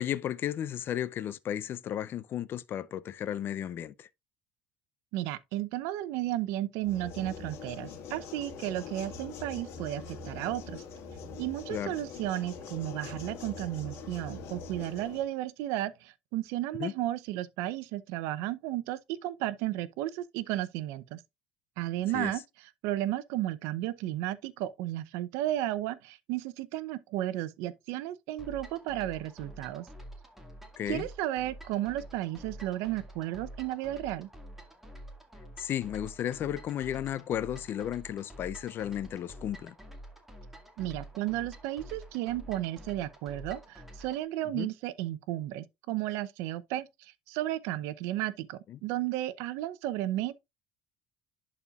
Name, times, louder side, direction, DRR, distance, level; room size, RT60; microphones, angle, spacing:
voice 1, 0.0-4.1 11.7-11.9 16.8-16.9 22.1-22.3 30.8-31.1 35.6-39.7 44.5-44.7 48.7-48.8, left 10 dB, 50° left, 0.5 m, -34 dB
voice 2, 5.1-10.8 11.4-21.2 21.8-22.4 22.8-29.9 30.9-34.3 40.8-50.4, right 14 dB, 75° right, 0.7 m, -33 dB
sound 1, 6.8-15.2, left 5 dB, 65° left, 1.9 m, -43 dB
sound 2, 28.4-44.2, equal, 5° right, 2.1 m, -48 dB
11.0 x 4.3 x 2.4 m
supercardioid pair, 100°, 5 cm